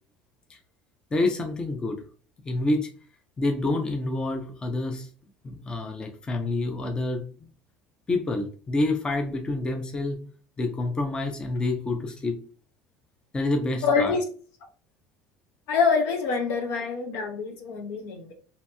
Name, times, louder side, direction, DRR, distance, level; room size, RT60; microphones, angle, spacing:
voice 1, 1.1-2.0 2.4-2.9 3.4-5.1 5.4-7.2 8.1-10.2 10.6-12.4 13.3-14.2, left 2 dB, 20° left, 3 dB, 0.5 m, -27 dB
voice 2, 13.8-14.2 15.7-18.3, left 5 dB, 70° left, 4 dB, 0.7 m, -25 dB
2.8 x 2.6 x 2.2 m, 0.40 s
supercardioid pair, 110°, 4 cm